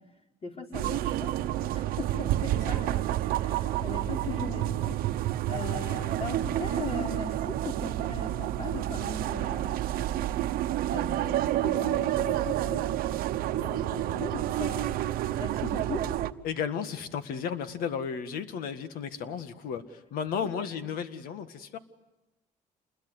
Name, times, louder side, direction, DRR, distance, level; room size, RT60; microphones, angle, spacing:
voice 1, 0.4-3.1 3.4-5.0 5.5-10.2 10.9-13.1 13.4-15.0 15.4-16.0, left 3 dB, 40° left, 1 dB, 4.9 m, -39 dB
sound 1, 0.7-16.3, right 13 dB, 85° right, 0.9 m, -29 dB
voice 2, 16.4-21.8, left 7 dB, 80° left, 10 dB, 1.8 m, -34 dB
28.0 x 21.5 x 8.0 m, 1.0 s
cardioid pair, 110°, 15 cm